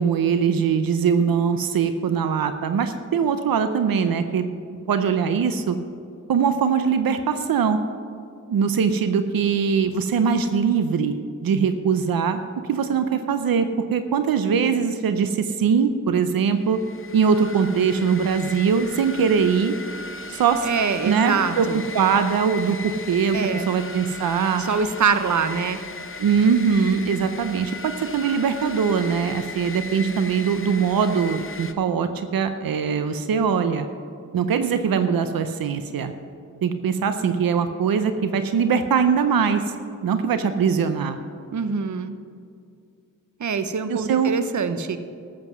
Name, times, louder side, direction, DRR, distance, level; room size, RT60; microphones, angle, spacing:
voice 1, 0.0-4.5 4.9-5.8 6.3-7.8 8.5-11.1 11.4-12.4 12.7-16.8 17.1-19.8 20.3-20.7 21.0-21.7 21.9-24.6 26.2-33.9 34.3-36.1 36.6-39.6 40.0-41.2 43.9-44.3, right 6 dB, 90° right, 9 dB, 0.7 m, -22 dB
sound 1, 16.6-31.7, left 3 dB, 40° left, 0.9 m, -37 dB
voice 2, 20.6-21.8 23.3-23.7 24.6-25.8 41.5-42.1 43.4-45.0, right 5 dB, 55° right, 10 dB, 0.8 m, -24 dB
13.5 x 7.6 x 6.1 m, 2.4 s
cardioid pair, 60°, 34 cm